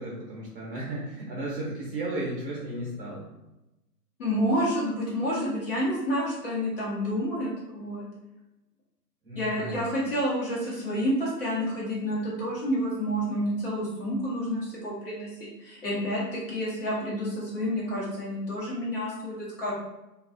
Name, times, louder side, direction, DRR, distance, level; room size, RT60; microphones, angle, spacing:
voice 1, 0.0-3.2 9.2-9.9, right 1 dB, 35° right, -4 dB, 0.8 m, -34 dB
voice 2, 4.2-8.1 9.3-19.7, equal, 35° left, -6 dB, 1.0 m, -29 dB
2.6 x 2.3 x 2.5 m, 0.97 s
hypercardioid pair, 145°, 49 cm